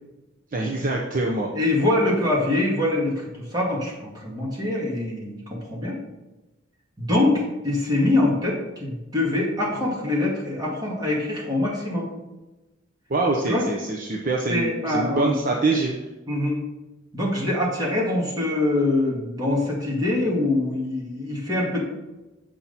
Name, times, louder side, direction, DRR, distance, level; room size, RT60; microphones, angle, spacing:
voice 1, 0.5-1.5 13.1-15.9, right 2 dB, 40° right, 0 dB, 0.7 m, -24 dB
voice 2, 1.5-6.0 7.0-12.1 13.5-13.6 14.5-15.4 16.3-16.6 17.1-21.8, left 2 dB, 20° right, -4 dB, 2.1 m, -24 dB
7.4 x 5.9 x 4.1 m, 1.1 s
head